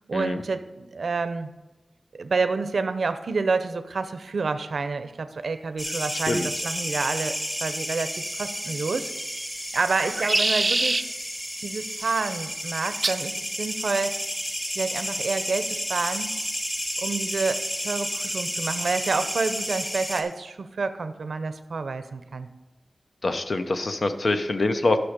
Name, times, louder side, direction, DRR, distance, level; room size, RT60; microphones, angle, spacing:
voice 1, 0.1-1.5 2.2-7.3 7.6-9.1 9.7-11.0 11.6-14.2 14.8-16.3 17.0-22.5, right 4 dB, 80° right, 10 dB, 0.6 m, -28 dB
sound 1, 5.8-20.2, equal, 15° left, 1.4 m, -31 dB
sound 2, 9.0-9.5 10.0-11.0 13.0-13.3 14.2-14.6, right 2 dB, 35° right, 0.5 m, -25 dB
voice 2, 23.2-25.0, left 2 dB, 55° left, 8 dB, 0.7 m, -24 dB
11.5 x 6.2 x 5.2 m, 1.1 s
wide cardioid pair, 110°, 0 cm